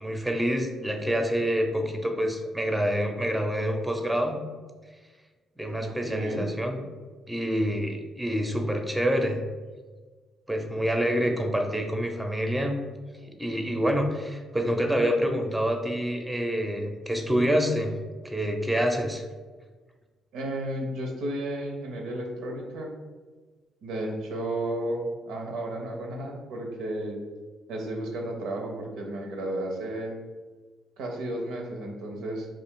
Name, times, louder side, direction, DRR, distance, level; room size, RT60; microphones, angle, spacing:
voice 1, 0.0-4.4 5.6-6.8 7.3-9.4 10.5-12.8 13.3-18.0 18.2-19.2, equal, 5° right, 4 dB, 0.5 m, -27 dB
voice 2, 5.8-6.5 20.3-23.0 23.8-27.2 27.7-30.2 31.0-32.5, right 1 dB, 80° right, 1 dB, 0.5 m, -33 dB
2.4 x 2.4 x 3.6 m, 1.4 s
supercardioid pair, 55°, 0 cm